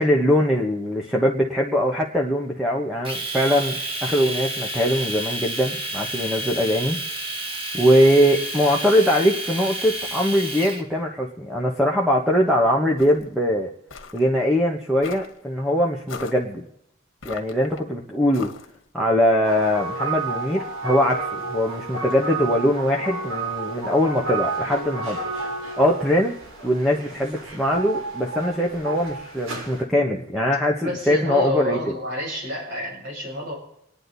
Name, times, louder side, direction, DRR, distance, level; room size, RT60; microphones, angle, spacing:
voice 1, 0.0-7.0 7.7-13.7 14.1-16.6 17.2-18.5 18.9-25.2 25.5-26.3 26.6-31.8, equal, ahead, -2 dB, 1.3 m, -21 dB
Domestic sounds home sounds, 3.0-10.8, right 1 dB, 25° right, 2.0 m, -30 dB
sound 1, 13.0-13.3 13.9-14.2 15.0-15.4 16.1-16.4 17.2-17.8 18.3-18.8, left 5 dB, 75° left, 1.7 m, -38 dB
sound 2, 19.4-29.8, right 3 dB, 90° right, 3.6 m, -31 dB
voice 2, 30.8-33.5, left 1 dB, 65° right, -3 dB, 7.6 m, -28 dB
27.5 x 10.0 x 4.1 m, 0.78 s
head